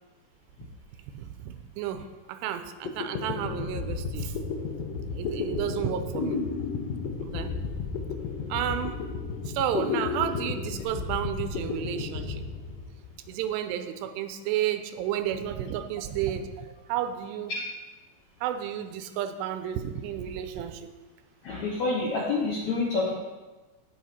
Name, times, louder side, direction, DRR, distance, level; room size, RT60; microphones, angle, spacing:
voice 1, 1.1-4.4 5.1-6.4 7.2-7.5 8.5-9.0 9.5-12.5 13.3-17.5 18.4-20.9, right 10 dB, 90° right, 9 dB, 2.8 m, -32 dB
sound 1, 2.6-2.7 2.9-13.3, left 5 dB, 90° left, 3.2 m, -33 dB
voice 2, 21.4-23.1, left 3 dB, 70° left, -3 dB, 1.8 m, -27 dB
16.5 x 5.8 x 4.3 m, 1.2 s
omnidirectional pair, 4.9 m